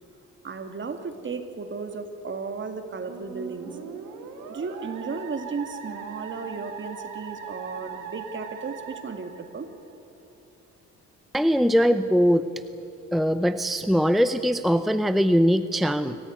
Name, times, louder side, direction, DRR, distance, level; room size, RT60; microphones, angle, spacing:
voice 1, 0.4-3.8 4.5-9.7, right 4 dB, 40° right, 7 dB, 2.2 m, -34 dB
Musical instrument, 3.1-9.9, right 6 dB, 85° right, 3.7 m, -40 dB
voice 2, 11.3-12.5 13.1-16.2, equal, ahead, 11 dB, 0.7 m, -21 dB
26.0 x 14.5 x 9.3 m, 2.7 s
cardioid pair, 90°, 30 cm